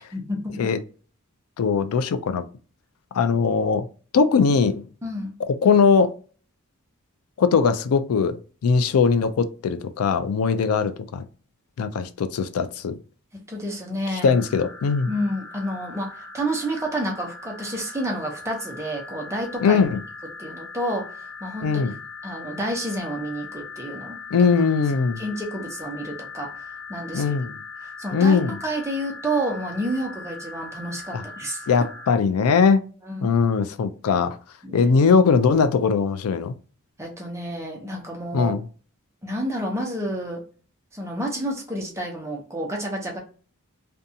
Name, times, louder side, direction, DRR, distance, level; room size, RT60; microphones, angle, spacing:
voice 1, 0.1-0.7 5.0-5.3 13.5-14.3 15.1-19.8 20.4-21.7 22.2-24.2 25.2-26.5 26.9-27.2 27.8-31.7 33.1-33.3 34.6-34.9 37.0-38.6 39.2-40.4 40.9-43.2, right 1 dB, 15° right, 0.7 m, -29 dB
voice 2, 1.6-2.4 3.1-3.9 4.1-4.9 5.5-6.1 7.4-11.2 11.8-13.0 14.2-15.1 19.6-20.0 21.6-21.9 24.3-25.2 27.1-27.6 28.1-28.6 31.1-31.2 31.7-32.8 33.2-34.4 34.7-36.5 38.3-38.7, left 5 dB, 75° left, 0.4 m, -20 dB
sound 1, 14.2-32.1, left 4 dB, 5° left, 1.3 m, -40 dB
2.6 x 2.3 x 2.7 m
head